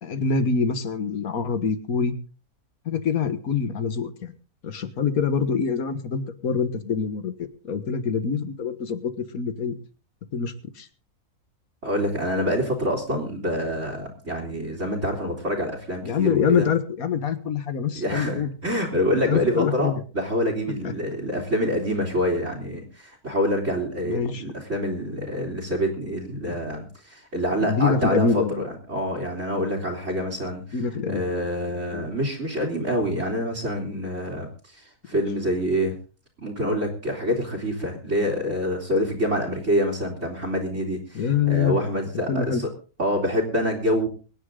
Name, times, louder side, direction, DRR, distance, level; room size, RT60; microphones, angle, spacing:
voice 1, 0.0-2.1 2.9-4.3 4.6-9.8 10.3-10.9 16.0-18.5 19.3-20.0 20.8-20.9 24.0-24.4 26.4-26.6 27.6-28.6 30.7-31.2 31.9-32.1 41.1-41.8 42.3-42.6, left 6 dB, 70° left, 11 dB, 1.8 m, -25 dB
voice 2, 11.8-16.7 17.9-30.8 31.1-35.9 36.4-42.7 43.0-44.1, equal, 50° right, 2 dB, 3.4 m, -26 dB
23.5 x 10.0 x 3.8 m, 0.36 s
omnidirectional pair, 1.6 m